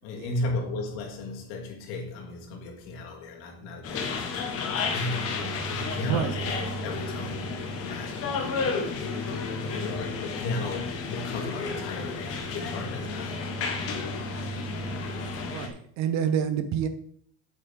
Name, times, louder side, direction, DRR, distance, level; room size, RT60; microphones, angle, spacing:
voice 1, 0.0-4.3 4.9-6.5 6.8-7.5 7.8-8.4 8.6-9.0 9.8-13.4, left 2 dB, 60° left, 2.8 m, -35 dB
sound 1, 3.8-15.7, left 3 dB, 30° left, 1.4 m, -32 dB
voice 2, 6.0-6.3 15.5-16.9, right 8 dB, 40° right, 0.6 m, -28 dB
8.7 x 8.2 x 3.6 m
cardioid pair, 180°, 43 cm